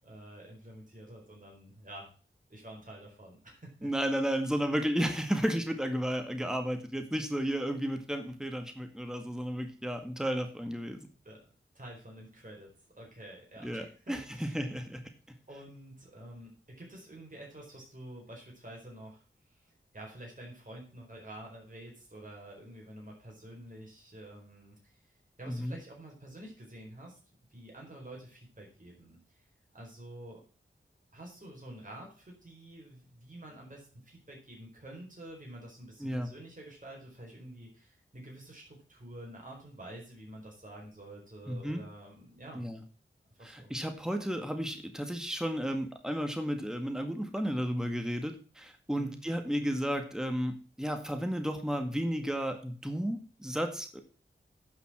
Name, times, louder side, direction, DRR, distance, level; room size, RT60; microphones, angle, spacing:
voice 1, 0.0-2.1 2.5-3.9 11.2-11.4 11.7-14.6 15.5-19.2 19.6-24.9 25.4-27.2 27.5-29.4 29.7-30.4 31.1-42.7 43.4-43.7 48.9-49.2, right 1 dB, 40° right, -2 dB, 4.6 m, -48 dB
voice 2, 3.8-11.0 13.6-15.0 25.5-25.8 36.0-36.3 41.5-41.8 42.5-42.8 43.4-54.0, equal, 5° right, 6 dB, 1.9 m, -33 dB
9.7 x 5.9 x 7.5 m, 0.38 s
wide cardioid pair, 50°, 21 cm